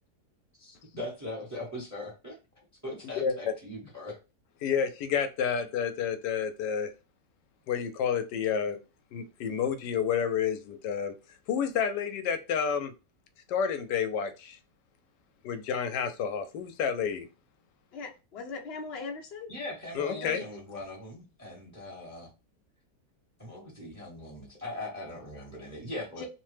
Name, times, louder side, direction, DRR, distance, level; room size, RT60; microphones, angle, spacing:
voice 1, 0.6-2.4 2.8-4.2 19.5-22.3 23.4-26.3, left 1 dB, 15° right, 0.8 m, -40 dB
voice 2, 4.6-6.9 7.7-8.8 9.1-11.1 11.5-12.9 13.5-14.6 15.4-17.3 19.9-20.4, left 7 dB, 85° left, 1.2 m, -30 dB
voice 3, 17.9-19.5 20.2-20.4 26.2-26.3, left 4 dB, 55° left, 0.7 m, -39 dB
2.9 x 2.1 x 3.2 m
omnidirectional pair, 1.8 m